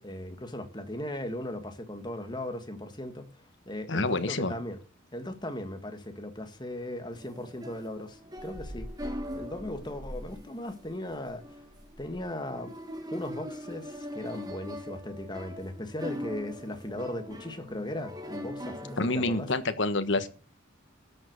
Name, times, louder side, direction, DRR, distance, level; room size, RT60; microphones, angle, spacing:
voice 1, 0.0-4.8 5.1-11.6 12.0-12.7 13.1-19.5, left 1 dB, 20° left, 1.7 m, -38 dB
voice 2, 3.9-4.5 19.0-20.3, left 2 dB, 65° left, 1.4 m, -27 dB
sound 1, 7.1-19.7, equal, 20° right, 1.7 m, -41 dB
13.0 x 7.5 x 6.7 m
head